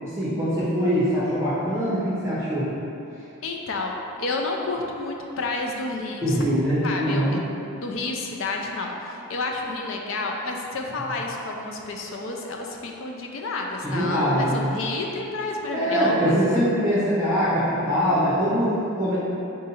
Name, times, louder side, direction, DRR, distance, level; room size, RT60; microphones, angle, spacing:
voice 1, 0.0-2.7 6.2-7.4 13.8-14.7 15.7-19.2, equal, 10° right, -12 dB, 0.7 m, -23 dB
voice 2, 3.4-6.4 6.8-7.2 7.8-16.4, left 3 dB, 65° left, 1 dB, 0.4 m, -30 dB
3.7 x 2.7 x 4.1 m, 2.9 s
head